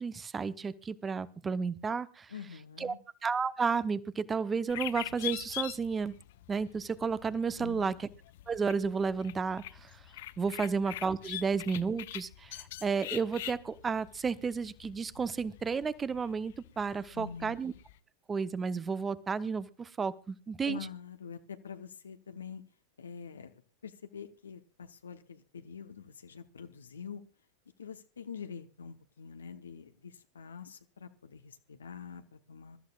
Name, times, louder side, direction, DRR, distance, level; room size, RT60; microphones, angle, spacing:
voice 1, 0.0-2.3 2.8-2.9 3.2-6.1 6.5-7.9 8.5-10.0 10.4-17.7 18.3-20.8, right 5 dB, 15° right, 16 dB, 0.9 m, -32 dB
voice 2, 2.3-3.0 7.6-8.0 10.6-10.7 11.3-11.4 17.1-17.6 20.6-22.6 23.0-27.2 27.8-32.8, left 6 dB, 70° left, 8 dB, 1.1 m, -45 dB
sound 1, 4.7-18.0, left 15 dB, 55° left, 0.6 m, -44 dB
26.0 x 13.5 x 2.4 m, 0.33 s
figure-of-eight pair, 90°, 0 cm